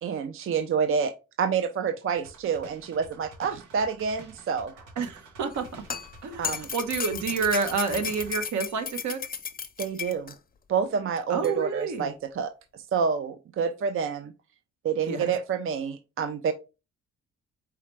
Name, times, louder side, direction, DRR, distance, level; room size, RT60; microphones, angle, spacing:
voice 1, 0.0-1.1 1.4-4.7 6.4-6.7 9.8-10.3 10.7-12.5 12.9-14.3 14.8-16.5, right 6 dB, 45° right, 0.5 m, -28 dB
sound 1, 2.2-8.5, right 3 dB, 85° right, 1.4 m, -48 dB
voice 2, 5.0-5.8 6.2-9.2 11.3-12.1 15.1-15.2, right 5 dB, 70° right, 1.1 m, -29 dB
sound 2, 5.5-10.4 11.4-11.5, left 7 dB, 30° left, 0.6 m, -35 dB
4.8 x 3.2 x 3.2 m
cardioid pair, 90°, 30 cm